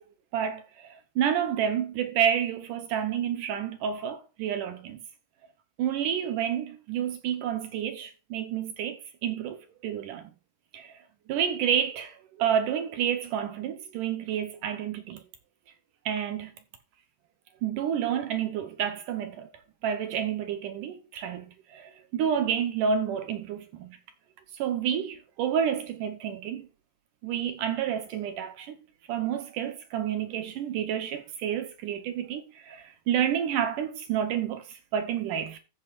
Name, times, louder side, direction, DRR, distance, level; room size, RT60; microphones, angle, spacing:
voice 1, 0.3-5.0 5.8-10.3 10.7-10.9 11.3-15.2 16.1-16.5 17.6-19.5 19.8-24.0 24.5-26.7 27.2-28.7 29.1-35.6, right 8 dB, 70° right, 2.1 m, -29 dB
15.0 x 7.7 x 2.4 m
omnidirectional pair, 4.6 m